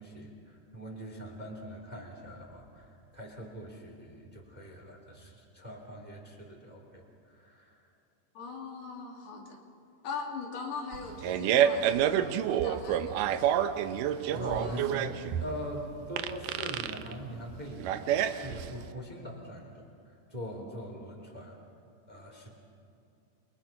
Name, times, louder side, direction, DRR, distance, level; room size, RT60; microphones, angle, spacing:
voice 1, 0.0-7.8 14.3-18.0 18.3-21.6 22.1-22.5, equal, 10° right, 1 dB, 2.7 m, -42 dB
voice 2, 8.3-9.6 10.0-13.6 14.5-14.8 20.6-20.7, left 4 dB, 85° left, 0 dB, 4.8 m, -41 dB
Fart, 10.9-18.9, right 10 dB, 75° right, 2.1 m, -28 dB
28.5 x 23.5 x 5.9 m, 2.6 s
omnidirectional pair, 4.5 m